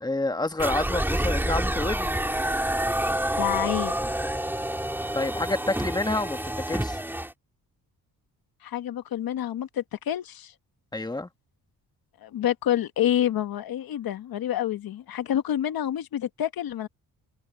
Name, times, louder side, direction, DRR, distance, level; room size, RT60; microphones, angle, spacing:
voice 1, 0.0-2.2 5.1-6.4 6.7-7.0 10.9-11.3, left 2 dB, 10° left, 1.7 m, -28 dB
sound 1, 0.6-7.3, right 1 dB, 5° right, 3.0 m, -28 dB
voice 2, 3.4-4.0 8.6-10.5 12.2-16.9, left 11 dB, 70° left, 1.4 m, -28 dB
open air
cardioid pair, 85°, 37 cm